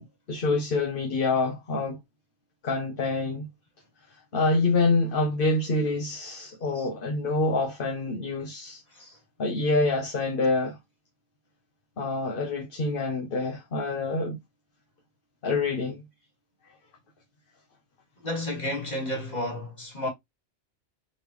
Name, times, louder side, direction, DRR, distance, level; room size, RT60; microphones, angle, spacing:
voice 1, 0.0-2.0 2.6-3.5 4.3-8.8 9.4-10.8 12.0-14.4 15.4-16.0, left 3 dB, 50° left, 1.1 m, -26 dB
voice 2, 6.5-6.9 8.9-9.2 18.2-20.1, left 1 dB, 35° left, 2.6 m, -32 dB
4.3 x 3.4 x 3.1 m
omnidirectional pair, 1.2 m